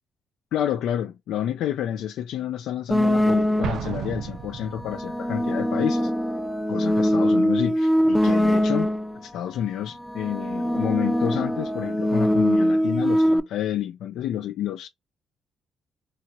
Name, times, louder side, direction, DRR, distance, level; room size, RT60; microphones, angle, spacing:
voice 1, 0.5-6.1 6.7-14.9, left 10 dB, 80° left, 0.3 m, -29 dB
sound 1, 2.9-4.0 4.8-9.2 10.0-13.4, equal, ahead, 0.4 m, -22 dB
Explosion, 3.6-5.2, right 8 dB, 70° right, 0.4 m, -33 dB
2.9 x 2.3 x 2.7 m
cardioid pair, 90°, 0 cm